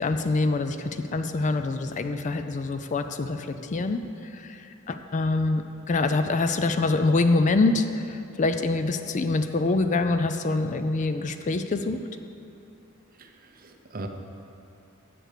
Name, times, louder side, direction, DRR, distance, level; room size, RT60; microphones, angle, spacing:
voice 1, 0.0-4.0 4.3-12.0, left 3 dB, 35° left, 8 dB, 0.4 m, -25 dB
voice 2, 13.2-14.1, right 2 dB, 40° right, 4 dB, 0.7 m, -40 dB
7.8 x 7.8 x 6.7 m, 2.7 s
head